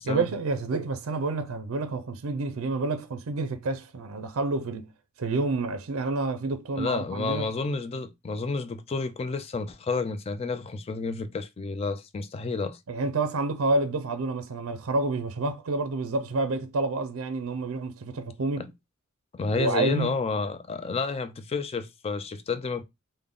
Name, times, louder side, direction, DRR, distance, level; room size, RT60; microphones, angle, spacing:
voice 1, 0.1-4.9 5.2-7.5 12.9-18.7 19.5-20.1, right 3 dB, 75° right, 0.5 m, -29 dB
voice 2, 6.8-12.8 18.6-18.7 19.3-22.8, left 4 dB, 30° left, 0.3 m, -30 dB
3.4 x 2.1 x 3.6 m
head